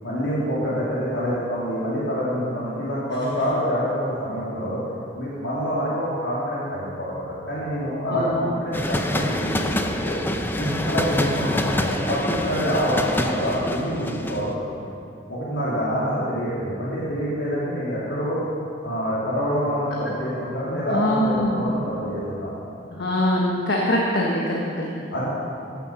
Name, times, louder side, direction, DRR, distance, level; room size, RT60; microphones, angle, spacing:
voice 1, 0.0-4.8 5.1-10.2 10.5-14.9 15.3-18.4 18.8-22.5 25.1-25.3, equal, 85° left, -9 dB, 2.9 m, -26 dB
sound 1, 8.7-14.5, left 1 dB, 10° left, 0.6 m, -26 dB
voice 2, 20.9-21.7 22.9-25.0, left 1 dB, 65° left, -2 dB, 1.3 m, -23 dB
15.0 x 7.0 x 6.2 m, 2.5 s
head